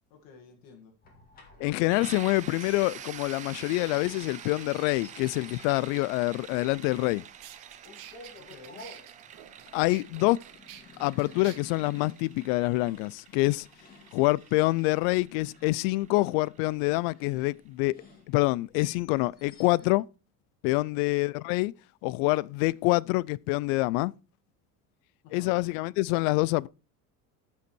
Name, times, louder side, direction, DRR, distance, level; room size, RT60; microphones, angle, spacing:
voice 1, 0.1-1.0 8.4-8.9 25.2-25.7, left 5 dB, 70° left, 2.2 m, -52 dB
sound 1, 1.0-19.9, left 3 dB, 20° left, 2.3 m, -54 dB
voice 2, 1.6-7.2 9.7-10.4 11.0-13.7 14.1-18.0 18.3-20.1 20.6-21.7 22.0-24.1 25.3-26.7, left 21 dB, 85° left, 0.5 m, -26 dB
sound 2, 1.9-17.5, right 9 dB, 20° right, 0.3 m, -47 dB
sound 3, 7.4-11.6, right 12 dB, 60° right, 1.2 m, -49 dB
11.5 x 5.7 x 4.5 m
cardioid pair, 180°, 40 cm